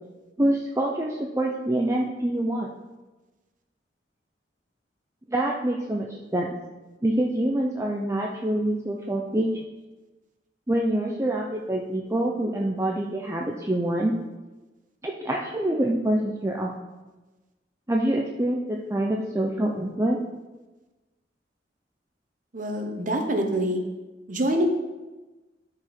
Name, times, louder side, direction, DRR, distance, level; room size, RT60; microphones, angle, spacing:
voice 1, 0.4-2.7 5.3-6.5 7.0-9.5 10.7-14.1 15.0-16.7 17.9-20.2, right 1 dB, 15° right, -1 dB, 0.6 m, -26 dB
voice 2, 22.5-23.8 24.3-24.6, right 1 dB, 50° right, 4 dB, 1.1 m, -25 dB
12.5 x 5.0 x 4.3 m, 1.2 s
head